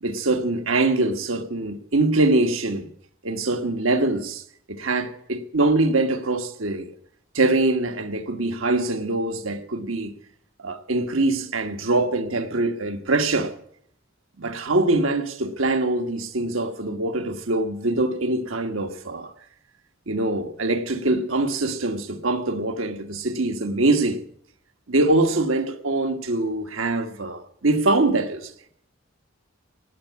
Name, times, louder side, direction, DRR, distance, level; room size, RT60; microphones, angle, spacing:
voice 1, 0.0-2.9 3.2-4.4 4.7-6.9 7.3-10.1 10.6-13.5 14.4-19.3 20.1-24.2 24.9-28.5, right 2 dB, 75° right, 1.4 m, -23 dB
17.5 x 7.3 x 9.4 m
head